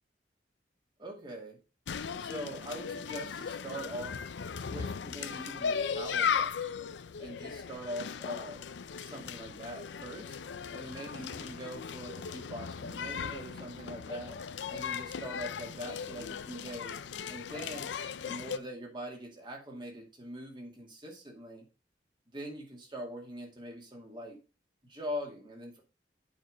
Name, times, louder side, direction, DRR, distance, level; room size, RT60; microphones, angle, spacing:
voice 1, 1.0-1.6 2.2-4.2 4.7-6.8 7.2-8.6 9.0-10.4 10.7-14.4 14.7-17.0 17.3-17.9 18.2-21.7 22.3-24.4 24.9-25.8, equal, 25° right, 1 dB, 2.3 m, -42 dB
sound 1, 1.9-18.6, left 6 dB, 85° left, 0.5 m, -37 dB
8.7 x 4.7 x 5.0 m, 0.32 s
head